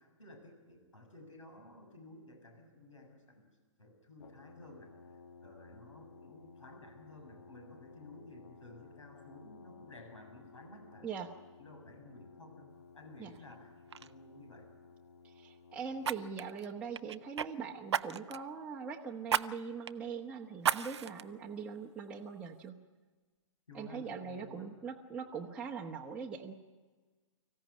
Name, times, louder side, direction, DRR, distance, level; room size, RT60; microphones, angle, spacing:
voice 1, 0.0-3.5 3.8-4.9 5.4-11.1 11.6-14.7 23.7-24.7, left 2 dB, 70° left, 4 dB, 6.8 m, -54 dB
Brass instrument, 4.2-16.5, left 4 dB, 55° left, 2.1 m, -57 dB
voice 2, 11.0-11.3 13.2-13.3 15.2-22.8 23.7-26.5, right 6 dB, 5° right, -3 dB, 1.2 m, -42 dB
Fire, 13.3-13.5 13.9-14.1 16.0-17.5 17.9-18.5 19.3-19.5 19.9-20.0 20.6-21.2 21.8-21.9, right 8 dB, 55° right, 0.7 m, -33 dB
24.5 x 15.5 x 9.7 m, 1.3 s
figure-of-eight pair, 120°, 17 cm